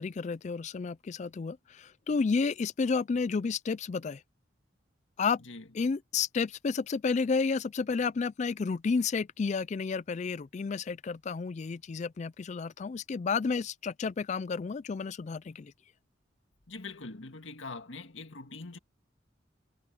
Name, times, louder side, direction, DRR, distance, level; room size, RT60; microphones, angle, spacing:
voice 1, 0.0-4.2 5.2-5.4 5.7-15.7, left 5 dB, 40° left, 0.3 m, -31 dB
voice 2, 16.7-18.8, left 3 dB, 85° left, 2.0 m, -43 dB
head